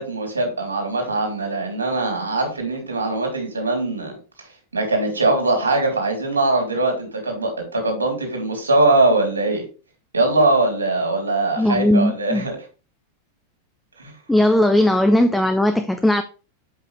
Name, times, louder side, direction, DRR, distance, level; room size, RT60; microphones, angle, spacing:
voice 1, 0.0-4.2 4.7-9.6 10.1-12.6 14.0-14.1, right 2 dB, 75° right, 3.2 m, -21 dB
voice 2, 11.6-12.4 14.3-16.2, left 1 dB, 5° left, 0.7 m, -17 dB
8.1 x 5.7 x 3.3 m
figure-of-eight pair, 90°, 0 cm